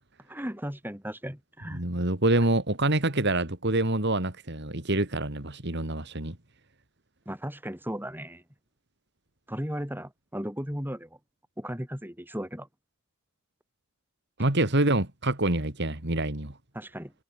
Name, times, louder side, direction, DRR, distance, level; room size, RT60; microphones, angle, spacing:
voice 1, 0.3-1.8 7.2-8.4 9.5-11.2 11.6-12.7 16.7-17.1, equal, 10° right, 6.8 m, -36 dB
voice 2, 1.7-6.4 14.4-16.6, right 2 dB, 55° right, 2.8 m, -26 dB
head